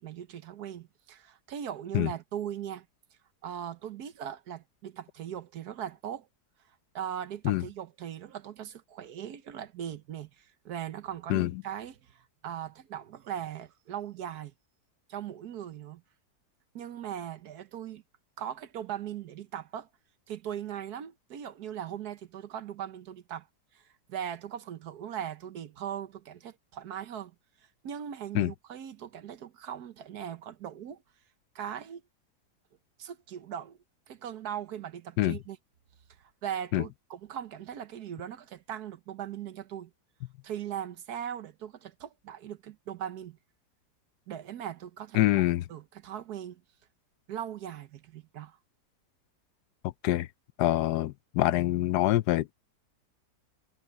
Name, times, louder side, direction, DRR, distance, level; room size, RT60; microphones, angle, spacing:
voice 1, 0.0-2.9 3.4-6.3 6.9-14.5 15.1-16.0 16.7-18.0 18.4-19.9 20.3-23.5 23.7-27.3 27.8-31.0 31.5-32.0 33.0-33.8 34.1-35.6 36.2-39.9 40.4-43.4 44.3-45.4 45.7-46.6 47.3-48.6, right 9 dB, 70° right, 1.5 m, -39 dB
voice 2, 45.1-45.6 49.8-50.3 50.6-52.5, left 15 dB, 80° left, 1.1 m, -25 dB
omnidirectional pair, 1.7 m